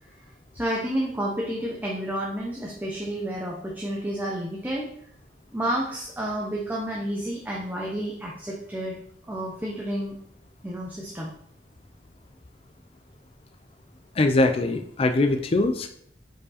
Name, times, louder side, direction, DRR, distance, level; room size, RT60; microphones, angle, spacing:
voice 1, 0.5-4.9 5.5-9.0 9.3-10.2 10.6-11.3, right 1 dB, 10° right, -3 dB, 0.8 m, -30 dB
voice 2, 14.2-15.9, left 2 dB, 35° left, 7 dB, 0.4 m, -22 dB
5.2 x 4.9 x 4.1 m, 0.66 s
head